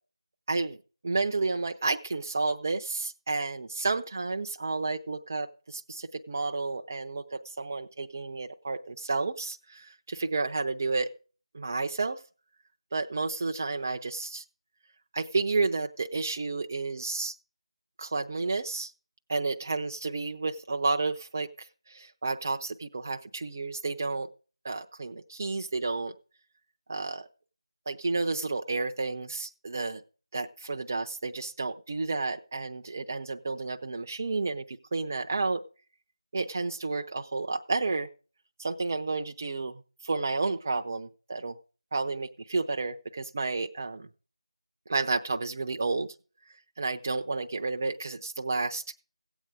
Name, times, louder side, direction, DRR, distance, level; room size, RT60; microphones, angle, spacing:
voice 1, 0.5-0.8 1.0-11.1 11.5-12.2 12.9-14.4 15.1-17.3 18.0-18.9 19.3-24.3 24.6-26.1 26.9-27.3 27.9-30.0 30.3-35.6 36.3-38.1 38.6-39.7 40.0-41.6 41.9-44.1 44.9-46.1 46.8-48.8, right 3 dB, 30° right, 4 dB, 0.6 m, -31 dB
16.0 x 8.2 x 5.0 m, 0.38 s
figure-of-eight pair, 170°, 3 cm